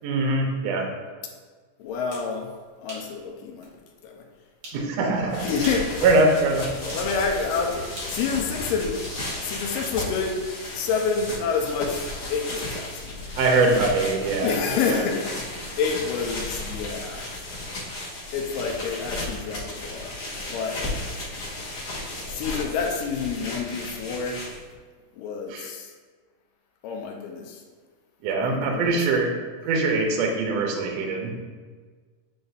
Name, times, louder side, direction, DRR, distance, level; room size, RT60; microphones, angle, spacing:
voice 1, 0.0-0.9 4.7-5.5 6.0-6.7 13.4-14.6 14.9-15.0 25.5-25.7 28.2-31.3, right 3 dB, 85° right, 2 dB, 1.5 m, -23 dB
voice 2, 1.8-2.5 2.8-3.7 4.0-4.3 5.4-5.9 6.8-9.0 9.4-10.4 10.7-13.4 14.4-15.4 15.8-17.4 18.3-20.2 20.5-20.8 22.3-24.5 25.1-25.9 26.8-27.6 28.4-29.0, left 5 dB, 85° left, 1 dB, 2.4 m, -28 dB
sound 1, 1.9-2.3 2.9-3.1 3.6-3.7 4.6-4.8 5.5-5.9 6.9-7.1 8.0-9.2, right 1 dB, 60° right, 0.9 m, -41 dB
sound 2, 5.1-24.7, left 2 dB, 55° left, 1.6 m, -34 dB
9.3 x 3.9 x 2.6 m, 1.5 s
omnidirectional pair, 3.9 m